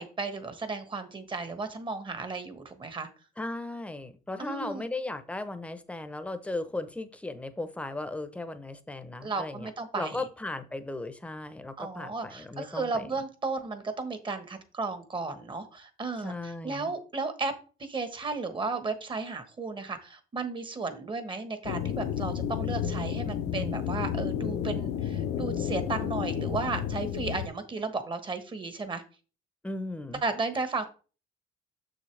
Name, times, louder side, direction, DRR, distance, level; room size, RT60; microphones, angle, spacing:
voice 1, 0.0-3.1 4.4-4.9 9.2-10.2 11.8-17.5 17.8-29.0 30.2-30.9, right 3 dB, 30° right, 9 dB, 1.2 m, -34 dB
voice 2, 3.4-9.7 10.0-13.1 16.2-16.9 29.6-30.2, left 2 dB, 5° left, 10 dB, 0.8 m, -36 dB
sound 1, 21.6-27.5, left 9 dB, 80° left, 0.8 m, -31 dB
6.7 x 6.3 x 3.3 m, 0.36 s
cardioid pair, 110°, 17 cm